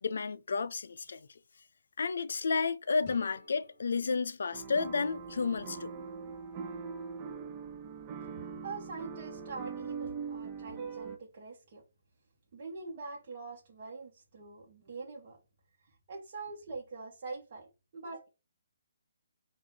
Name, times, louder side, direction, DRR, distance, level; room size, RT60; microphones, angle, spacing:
voice 1, 0.0-1.3 2.0-5.9, left 4 dB, 60° left, 0.4 m, -32 dB
sound 1, 3.0-5.9, left 3 dB, 35° left, 1.4 m, -57 dB
sound 2, 4.5-11.2, right 5 dB, 25° right, 0.5 m, -41 dB
voice 2, 8.2-11.8 12.5-15.4 16.1-18.3, right 4 dB, 45° right, 1.0 m, -44 dB
3.6 x 2.5 x 4.6 m
figure-of-eight pair, 140°, 0 cm